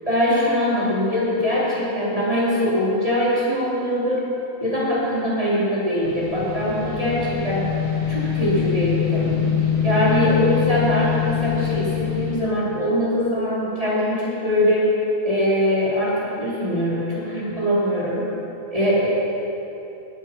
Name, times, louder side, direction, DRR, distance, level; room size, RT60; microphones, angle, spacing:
voice 1, 0.1-4.2 4.6-7.7 8.1-9.3 9.8-14.9 15.2-18.2 18.7-19.1, equal, 10° right, -10 dB, 3.4 m, -22 dB
sound 1, 6.0-12.4, left 9 dB, 20° left, 2.8 m, -24 dB
18.5 x 7.9 x 6.0 m, 3.0 s
omnidirectional pair, 4.5 m